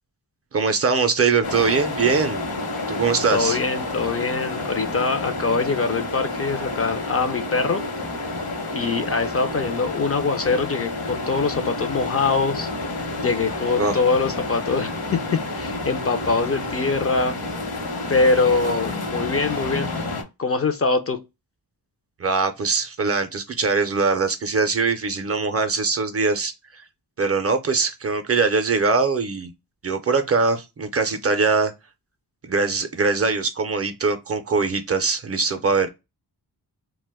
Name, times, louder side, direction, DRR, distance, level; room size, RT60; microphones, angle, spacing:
voice 1, 0.5-2.4 2.9-3.6 13.8-14.0 22.2-26.8 27.2-29.5 29.8-31.7 32.4-35.9, right 4 dB, 35° right, 0.4 m, -22 dB
sound 1, 1.4-20.2, left 2 dB, 60° left, 0.9 m, -29 dB
voice 2, 3.3-7.8 8.7-12.7 13.2-15.2 15.5-17.4 18.1-19.9 20.4-21.2, left 4 dB, 35° left, 0.4 m, -23 dB
2.5 x 2.1 x 3.3 m
wide cardioid pair, 110°, 40 cm